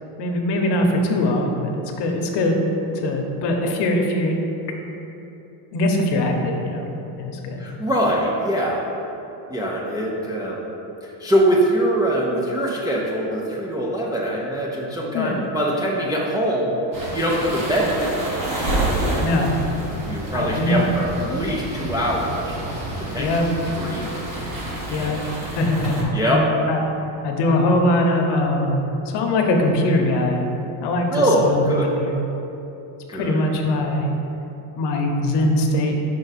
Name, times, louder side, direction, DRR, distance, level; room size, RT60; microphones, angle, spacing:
voice 1, 0.2-2.7 2.9-4.3 5.7-6.9 7.2-7.6 15.1-15.4 19.2-19.5 20.3-20.9 23.2-23.5 24.9-25.2 25.5-26.0 26.3-26.8 27.2-28.8 29.1-30.5 30.8-31.7 31.9-32.2 33.1-34.1 34.8-36.0, left 1 dB, 60° left, 3 dB, 0.9 m, -21 dB
voice 2, 7.6-8.9 9.5-10.6 11.0-16.8 17.1-18.4 18.8-19.3 20.1-22.6 23.0-23.4 23.8-24.1 24.9-25.4 26.1-26.5 31.1-32.0 33.1-33.4, right 1 dB, 10° right, -5 dB, 0.3 m, -23 dB
sound 1, 16.9-26.0, right 1 dB, 45° right, 1.2 m, -28 dB
5.3 x 4.7 x 4.0 m, 3.0 s
cardioid pair, 130°, 47 cm